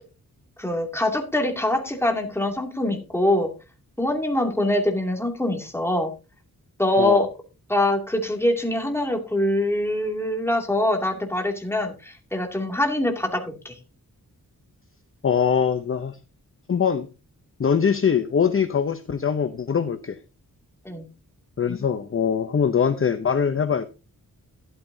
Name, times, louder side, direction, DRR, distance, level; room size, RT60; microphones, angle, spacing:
voice 1, 0.6-3.5 4.0-6.1 6.8-7.3 7.7-13.8 20.8-21.0, left 1 dB, 5° left, 3 dB, 2.5 m, -24 dB
voice 2, 15.2-16.2 16.7-17.1 17.6-20.2 21.6-23.9, left 7 dB, 40° left, 10 dB, 0.7 m, -22 dB
13.0 x 12.5 x 2.7 m, 0.30 s
wide cardioid pair, 135°, 35 cm